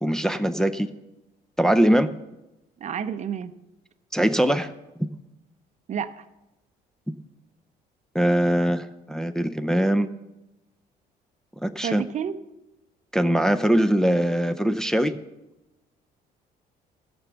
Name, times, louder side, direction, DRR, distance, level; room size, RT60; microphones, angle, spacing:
voice 1, 0.0-0.9 1.6-2.1 4.1-4.7 8.1-10.1 11.6-12.0 13.1-15.2, equal, 5° left, 7 dB, 0.5 m, -22 dB
voice 2, 2.8-3.5 5.9-6.2 11.8-12.4, right 8 dB, 45° right, 12 dB, 0.6 m, -30 dB
14.0 x 6.2 x 6.9 m, 0.98 s
cardioid pair, 110°, 17 cm